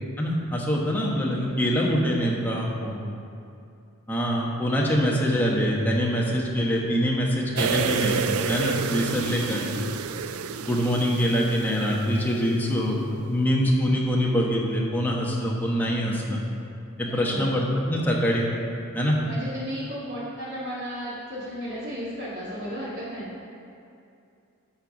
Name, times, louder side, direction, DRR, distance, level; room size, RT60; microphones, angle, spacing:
voice 1, 0.2-3.0 4.1-8.2 8.5-9.7 10.6-16.4 17.0-18.5 18.9-19.2, equal, 10° left, -3 dB, 1.2 m, -24 dB
voice 2, 1.1-1.5 17.0-17.5 19.2-23.3, equal, 60° right, -12 dB, 2.2 m, -34 dB
sound 1, 7.6-12.4 12.7-12.8, right 6 dB, 80° right, 0.4 m, -30 dB
11.5 x 4.5 x 7.0 m, 2.6 s
head